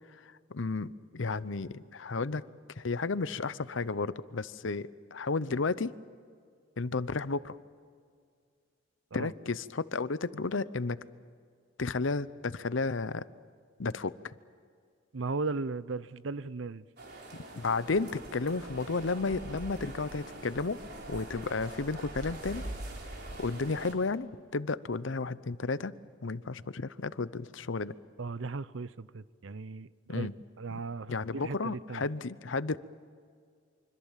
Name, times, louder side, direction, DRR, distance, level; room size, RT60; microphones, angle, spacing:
voice 1, 0.1-2.4 2.7-5.9 6.8-7.6 9.1-11.0 11.8-13.2 13.8-14.3 17.5-20.8 21.1-22.7 23.4-25.9 26.2-28.0 30.1-30.4 31.1-32.8, left 3 dB, 70° left, 0.8 m, -33 dB
voice 2, 15.1-16.8 28.2-30.3 30.6-32.1, right 3 dB, 70° right, 0.7 m, -37 dB
sound 1, 17.0-23.9, right 1 dB, 55° right, 4.0 m, -43 dB
25.5 x 25.0 x 7.4 m
head